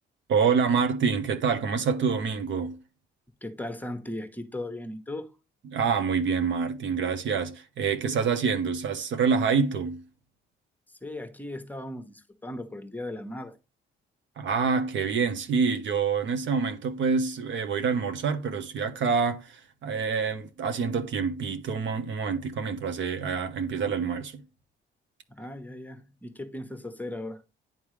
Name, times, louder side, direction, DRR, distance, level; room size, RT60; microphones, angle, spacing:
voice 1, 0.3-2.8 5.6-10.0 14.4-24.4, right 5 dB, 70° right, 1.0 m, -27 dB
voice 2, 3.4-5.3 11.0-13.6 25.3-27.4, left 1 dB, 10° left, 1.0 m, -37 dB
10.5 x 3.5 x 3.2 m
cardioid pair, 90°, 20 cm